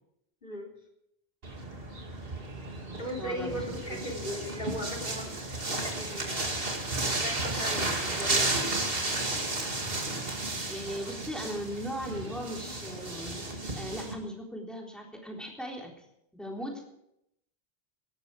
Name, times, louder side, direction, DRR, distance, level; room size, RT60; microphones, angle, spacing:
voice 1, 0.4-0.7 3.0-6.6 7.0-9.6 10.1-10.2, equal, 55° left, 2 dB, 3.8 m, -39 dB
sound 1, 1.4-14.1, right 2 dB, 65° right, 2.6 m, -33 dB
voice 2, 3.2-4.0 10.7-13.4 13.8-15.9 16.3-16.8, equal, ahead, -1 dB, 3.8 m, -38 dB
18.5 x 13.5 x 4.9 m, 0.77 s
omnidirectional pair, 1.0 m